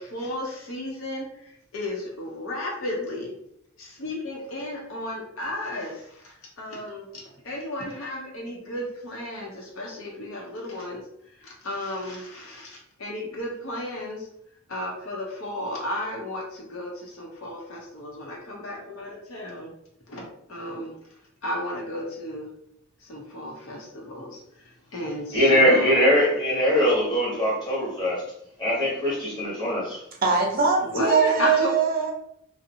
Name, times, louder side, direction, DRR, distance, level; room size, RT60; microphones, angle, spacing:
voice 1, 0.0-3.3 3.8-11.0 11.4-14.3 14.7-19.7 20.1-20.9 21.4-22.5 23.0-26.1 30.8-31.7, left 1 dB, 75° left, -1 dB, 0.7 m, -33 dB
voice 2, 25.3-28.2 28.6-30.0, equal, 20° left, -7 dB, 1.0 m, -21 dB
voice 3, 30.2-32.1, right 5 dB, 40° right, 0 dB, 0.4 m, -22 dB
2.5 x 2.0 x 2.7 m, 0.71 s
head